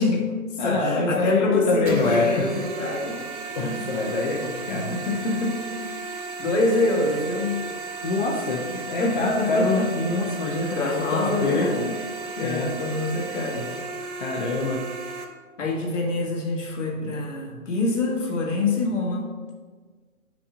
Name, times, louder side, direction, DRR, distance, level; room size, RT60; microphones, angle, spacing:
voice 1, 0.0-3.2 3.6-3.9 4.7-5.7 6.4-7.6 9.0-9.9 10.7-11.9 12.4-13.8 15.6-19.3, left 2 dB, 60° left, -2 dB, 1.7 m, -26 dB
voice 2, 0.6-2.4 3.6-5.0 8.0-11.7 12.4-12.7 14.2-14.8, left 3 dB, 35° left, -2 dB, 0.7 m, -25 dB
sound 1, 1.9-15.2, right 4 dB, 75° right, 1.4 m, -35 dB
9.6 x 5.9 x 2.5 m, 1.4 s
hypercardioid pair, 155°, 43 cm